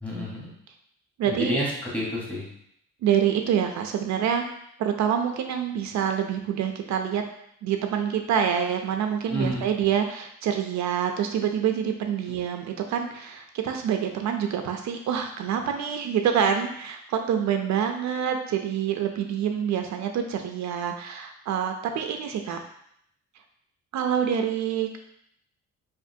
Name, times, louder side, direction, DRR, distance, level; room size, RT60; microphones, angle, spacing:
voice 1, 0.0-0.5 1.2-2.5 9.3-9.6, equal, 5° left, -5 dB, 1.0 m, -29 dB
voice 2, 1.2-1.6 3.0-4.5 4.8-7.2 7.6-22.6 23.9-25.0, right 8 dB, 75° right, 5 dB, 0.5 m, -26 dB
4.8 x 2.6 x 2.7 m, 0.71 s
cardioid pair, 175°, 29 cm